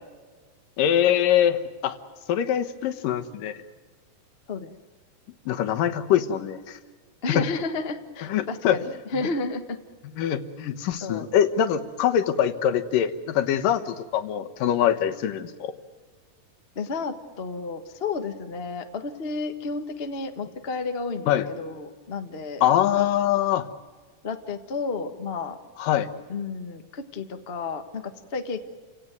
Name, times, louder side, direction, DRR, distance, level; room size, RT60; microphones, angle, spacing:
voice 1, 0.8-2.0 2.3-3.5 5.5-6.8 7.4-7.5 8.3-8.8 10.2-15.7 21.3-21.5 22.6-23.7 25.8-26.1, left 10 dB, 80° left, 8 dB, 2.9 m, -23 dB
voice 2, 7.2-8.8 9.1-9.8 11.0-11.3 16.7-22.6 22.9-23.1 24.2-25.6 26.3-28.6, left 4 dB, 60° left, 7 dB, 0.6 m, -31 dB
29.5 x 17.0 x 9.2 m, 1.4 s
omnidirectional pair, 3.8 m